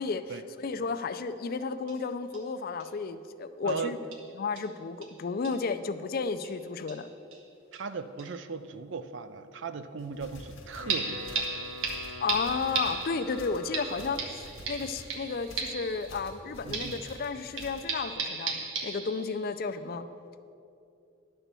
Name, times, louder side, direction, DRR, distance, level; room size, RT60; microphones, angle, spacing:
voice 1, 0.6-4.0 4.4-7.1 12.2-20.1, left 4 dB, 45° left, 11 dB, 0.4 m, -33 dB
sound 1, 1.4-1.5 1.9-2.0 2.3-2.4 2.8-2.9 3.7-3.8 4.1-4.3 4.6-4.7 5.0-5.1 5.4-5.6 6.4-6.6 6.9-7.4 7.7-7.8 8.2-8.3 10.9-16.4 16.7-19.5 19.9-20.0, right 4 dB, 80° right, 1.3 m, -36 dB
voice 2, 3.6-4.0 7.7-11.6 16.6-17.0, right 4 dB, 60° right, 11 dB, 0.5 m, -38 dB
sound 2, 10.0-18.0, left 1 dB, 75° left, 1.3 m, -49 dB
Wind instrument woodwind instrument, 10.6-14.5, left 4 dB, 90° left, 1.0 m, -45 dB
11.0 x 4.4 x 6.8 m, 2.6 s
head